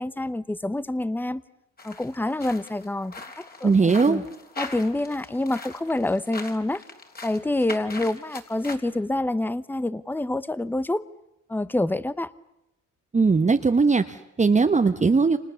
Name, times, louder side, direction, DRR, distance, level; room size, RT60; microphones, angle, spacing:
voice 1, 0.0-1.4 1.8-4.2 4.6-6.8 7.2-11.1 11.5-12.3, left 1 dB, 5° left, 16 dB, 0.9 m, -27 dB
sound 1, 1.8-8.8, left 3 dB, 30° left, 3.6 m, -41 dB
voice 2, 3.6-4.2 13.1-15.4, right 4 dB, 25° right, 6 dB, 1.1 m, -19 dB
29.5 x 26.5 x 7.0 m, 0.88 s
cardioid pair, 90°, 30 cm